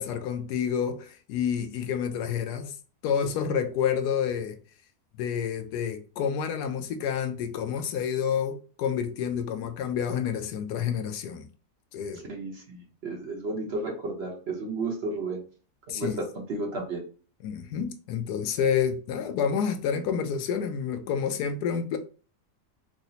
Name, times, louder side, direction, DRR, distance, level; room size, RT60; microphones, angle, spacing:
voice 1, 0.0-2.8 3.0-4.6 5.2-11.5 11.9-12.2 15.9-16.2 17.4-22.0, left 7 dB, 85° left, 1.1 m, -29 dB
voice 2, 12.3-15.4 15.9-17.0, right 2 dB, 50° right, 1.0 m, -33 dB
4.8 x 2.0 x 2.7 m
omnidirectional pair, 1.7 m